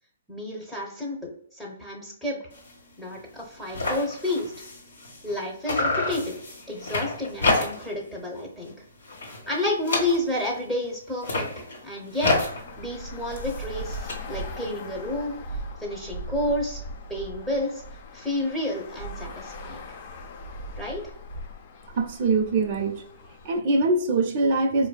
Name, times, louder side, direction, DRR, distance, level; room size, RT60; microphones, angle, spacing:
voice 1, 0.3-2.4 3.0-4.5 5.2-6.4 6.7-8.7 9.5-12.3 12.8-15.4 15.8-16.8 17.1-17.8 18.1-19.8 20.8-21.0, left 1 dB, 5° left, -3 dB, 0.7 m, -30 dB
sound 1, 2.5-2.8 3.1-3.2 3.4-5.4 5.6-8.0 8.4-8.7 9.0-10.6 11.1-14.1, left 2 dB, 75° left, 1.3 m, -29 dB
Traffic noise roadway noise, 12.2-23.6, equal, 45° left, 0.5 m, -39 dB
voice 2, 21.9-23.0 23.4-24.9, right 3 dB, 40° right, 3 dB, 0.5 m, -23 dB
4.2 x 2.6 x 2.3 m, 0.66 s
hypercardioid pair, 135°, 0 cm